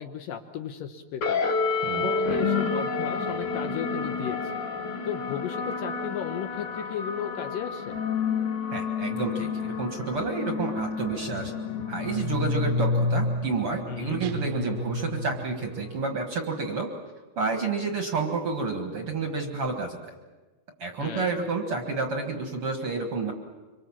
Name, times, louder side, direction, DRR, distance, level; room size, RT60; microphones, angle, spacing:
voice 1, 0.0-1.4 1.9-4.4 5.1-8.0 13.9-14.2 21.0-21.3, left 8 dB, 70° left, 6 dB, 2.5 m, -35 dB
sound 1, 1.2-16.0, left 4 dB, 55° left, 3.0 m, -30 dB
voice 2, 8.7-11.5 11.9-16.9 17.4-20.1 20.8-23.3, right 4 dB, 45° right, 4 dB, 2.0 m, -30 dB
sound 2, 14.2-15.9, right 3 dB, 80° right, 2.9 m, -37 dB
26.0 x 24.5 x 7.4 m, 1.2 s
omnidirectional pair, 4.5 m